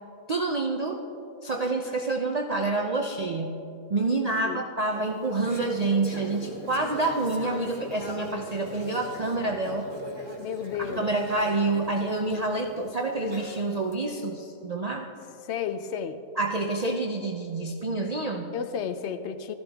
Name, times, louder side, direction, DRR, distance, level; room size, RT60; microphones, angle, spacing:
voice 1, 0.3-1.0 1.4-3.6 3.9-9.9 10.8-15.1 16.4-18.5, right 3 dB, 90° right, 3 dB, 0.3 m, -28 dB
Conversation / Chatter, 5.0-13.9, equal, 15° left, 1.6 m, -40 dB
voice 2, 10.4-11.1 15.5-16.2 18.5-19.5, left 7 dB, 65° left, 10 dB, 0.7 m, -32 dB
14.5 x 13.5 x 3.5 m, 2.8 s
omnidirectional pair, 1.6 m